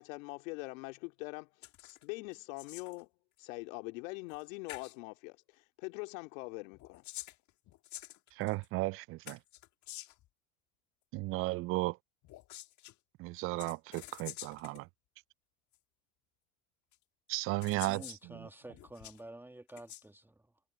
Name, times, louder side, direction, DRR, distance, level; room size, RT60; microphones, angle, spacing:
voice 1, 0.0-1.5 1.8-3.1 3.4-7.0, left 27 dB, 65° left, 2.4 m, -43 dB
sound 1, 1.6-2.0 2.3-3.0 4.3-4.4 4.7-5.0 6.7-8.7 9.3-10.3 12.2-12.9 13.6-14.8 15.7-15.8 16.9-17.0 17.6-18.2 18.7-19.2 19.7-20.0, left 15 dB, 40° left, 1.7 m, -48 dB
voice 2, 8.3-9.4 11.1-12.0 13.2-14.9 17.3-18.0 18.3-18.5, right 21 dB, 35° right, 0.4 m, -35 dB
voice 3, 17.9-20.6, right 1 dB, 5° right, 2.0 m, -50 dB
hypercardioid pair, 105°, 42 cm